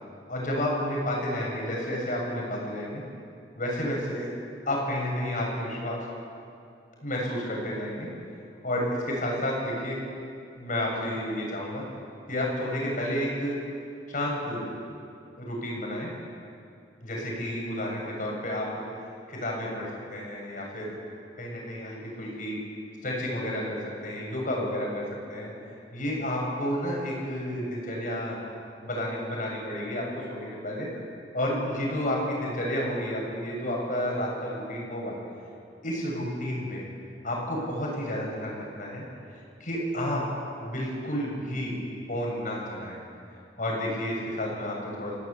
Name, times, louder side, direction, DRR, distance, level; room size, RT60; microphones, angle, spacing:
voice 1, 0.3-3.0 3.6-4.3 4.7-6.0 7.0-8.1 8.6-10.0 10.6-11.8 12.3-13.6 14.1-14.7 15.4-16.1 17.0-18.8 19.3-21.0 21.4-22.6 23.0-25.0 25.3-25.5 25.9-28.4 28.8-30.9 31.3-35.2 35.8-36.8 37.2-39.0 39.6-40.2 40.6-41.8 42.1-43.0 43.6-45.2, left 1 dB, 45° left, -2 dB, 7.2 m, -31 dB
29.5 x 17.0 x 8.3 m, 2.5 s
head